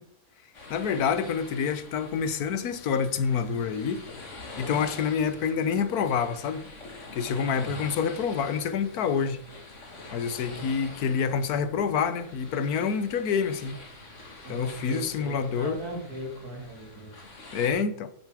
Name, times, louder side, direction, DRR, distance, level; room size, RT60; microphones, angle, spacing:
sound 1, 0.5-17.7, left 2 dB, 55° left, 2.2 m, -45 dB
voice 1, 0.7-4.0 4.6-6.6 7.1-9.4 10.1-13.8 14.5-15.8 17.5-18.1, left 6 dB, 85° left, 1.4 m, -27 dB
voice 2, 7.5-7.9 14.4-17.2, right 2 dB, 85° right, 2.9 m, -39 dB
9.3 x 8.3 x 4.9 m
omnidirectional pair, 1.6 m